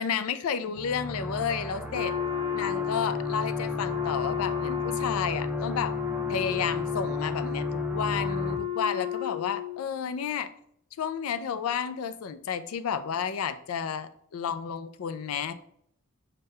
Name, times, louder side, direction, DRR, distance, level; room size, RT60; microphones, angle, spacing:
voice 1, 0.0-2.2 2.5-6.0 6.3-10.5 11.0-15.5, left 7 dB, 80° left, 12 dB, 0.4 m, -31 dB
sound 1, 0.8-8.6, equal, 5° right, 0.3 m, -35 dB
Wind instrument woodwind instrument, 1.9-9.8, left 10 dB, 40° right, 1.9 m, -32 dB
6.4 x 2.2 x 3.4 m, 0.68 s
head